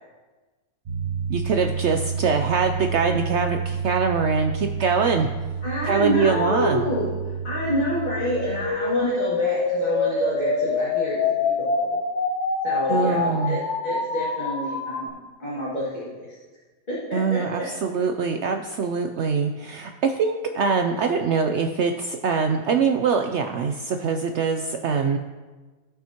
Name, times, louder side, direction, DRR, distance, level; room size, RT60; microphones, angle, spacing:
sound 1, 0.9-8.7, right 6 dB, 45° right, 0.9 m, -30 dB
voice 1, 1.3-5.3 5.9-6.8 12.9-13.6 17.1-25.2, right 5 dB, 80° right, 5 dB, 0.6 m, -23 dB
voice 2, 5.6-7.1 7.4-12.0 12.6-16.4 16.9-17.7, left 1 dB, 25° left, -10 dB, 2.3 m, -28 dB
sound 2, 8.1-15.1, left 4 dB, 55° left, 1.0 m, -25 dB
16.0 x 5.7 x 2.9 m, 1.3 s
omnidirectional pair, 1.7 m